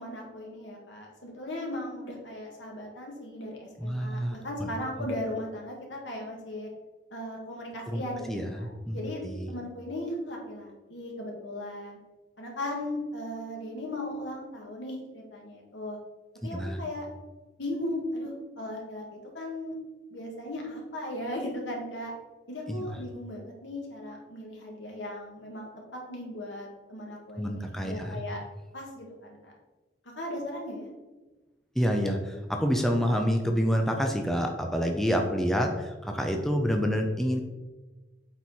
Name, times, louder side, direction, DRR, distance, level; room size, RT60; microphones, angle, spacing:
voice 1, 0.0-6.7 7.1-9.2 9.5-12.0 12.4-16.0 16.4-17.1 17.6-19.7 20.1-22.1 22.5-28.4 28.7-29.5 30.2-30.9, left 1 dB, 90° left, 0 dB, 1.9 m, -37 dB
voice 2, 3.8-4.7 7.9-8.0 8.3-9.0 9.2-9.5 16.5-16.8 22.7-22.8 27.4-28.2 31.8-37.4, equal, ahead, 2 dB, 0.6 m, -28 dB
8.0 x 4.6 x 4.3 m, 1.2 s
head